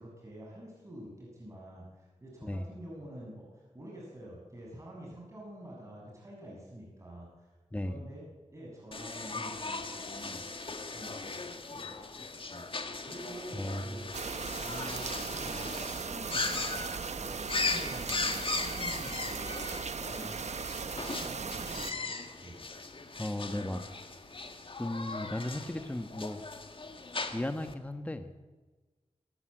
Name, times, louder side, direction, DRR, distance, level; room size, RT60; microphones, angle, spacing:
voice 1, 0.0-7.4 7.8-10.4 10.9-14.1 14.5-20.4 20.8-22.6, right 1 dB, 25° right, -4 dB, 7.4 m, -47 dB
voice 2, 7.7-8.0 13.5-14.2 23.2-23.8 24.8-26.4 27.3-28.3, left 1 dB, 10° left, 9 dB, 1.2 m, -36 dB
sound 1, 8.9-27.7, left 3 dB, 45° left, 2.0 m, -38 dB
sound 2, 14.1-21.9, right 5 dB, 70° right, 1.0 m, -38 dB
27.0 x 14.0 x 8.9 m, 1.3 s
wide cardioid pair, 125°, 12 cm